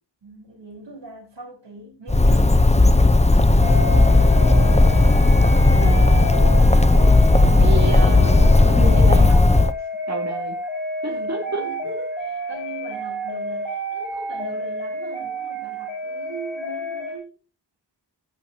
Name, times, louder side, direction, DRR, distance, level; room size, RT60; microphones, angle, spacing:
voice 1, 0.2-3.8 4.1-4.4 11.1-17.3, right 3 dB, 80° right, 4.6 m, -40 dB
Bird, 2.1-9.7, left 2 dB, 15° left, 0.9 m, -14 dB
sound 1, 3.6-17.2, equal, 85° left, 4.3 m, -30 dB
voice 2, 5.7-6.2 7.6-9.4 10.1-10.6 11.0-11.6, right 2 dB, 40° right, 3.5 m, -29 dB
17.5 x 8.5 x 3.0 m
wide cardioid pair, 65°, 43 cm